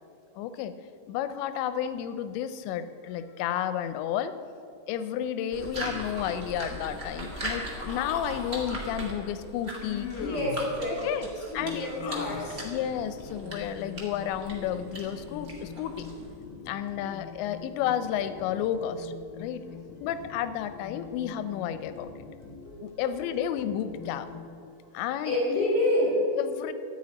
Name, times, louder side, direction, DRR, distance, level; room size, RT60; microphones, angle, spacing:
voice 1, 0.4-0.7 1.1-4.4 4.9-10.1 11.0-11.3 11.5-12.3 12.6-16.1 16.7-19.6 20.0-22.1 22.8-24.3 24.9-25.4 26.4-26.7, left 10 dB, 85° left, 12 dB, 2.7 m, -32 dB
sound 1, 5.5-16.4, right 1 dB, 45° right, 0.8 m, -40 dB
Human voice, 7.3-8.8 9.8-10.7 11.6-12.7, left 5 dB, 65° left, 2.5 m, -39 dB
voice 2, 10.1-12.6 19.3-19.5 25.2-26.2, left 1 dB, 15° left, -4 dB, 3.2 m, -28 dB
sound 2, 11.6-24.5, left 5 dB, 40° left, 2.4 m, -45 dB
13.5 x 6.3 x 9.5 m, 2.5 s
omnidirectional pair, 5.2 m